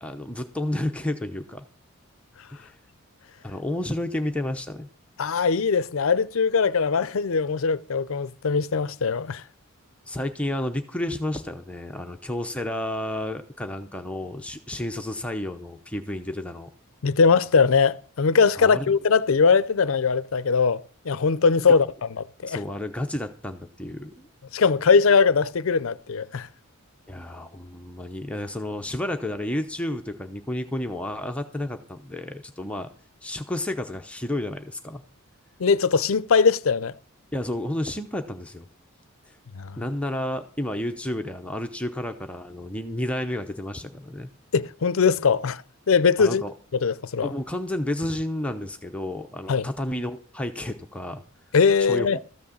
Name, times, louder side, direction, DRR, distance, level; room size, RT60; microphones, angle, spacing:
voice 1, 0.0-1.6 2.5-2.8 3.4-4.9 10.1-16.7 18.6-18.9 22.5-24.3 27.1-32.9 33.2-35.0 37.3-38.7 39.3-39.4 39.8-44.3 46.2-46.5 47.2-51.2 51.8-52.2, left 1 dB, 5° left, 0.7 m, -31 dB
voice 2, 5.2-9.4 17.0-21.9 22.4-22.6 24.5-26.5 35.6-36.9 39.6-39.8 44.5-45.6 45.9-46.4 46.8-47.3 49.5-49.6 51.5-52.2, left 5 dB, 65° left, 0.5 m, -21 dB
13.5 x 6.3 x 7.1 m
head